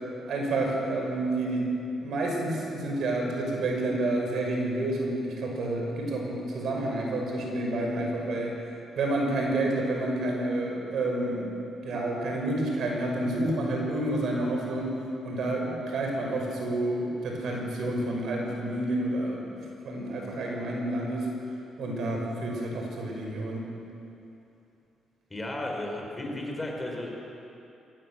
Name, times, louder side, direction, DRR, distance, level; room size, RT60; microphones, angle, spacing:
voice 1, 0.3-1.7 2.0-8.6 9.0-11.5 11.8-14.9 15.2-19.6 19.8-21.3 21.8-23.7, right 1 dB, 65° right, 0 dB, 5.9 m, -29 dB
voice 2, 25.3-27.1, left 1 dB, 20° left, 0 dB, 5.1 m, -34 dB
21.5 x 17.5 x 7.7 m, 2.8 s
cardioid pair, 90°, 0 cm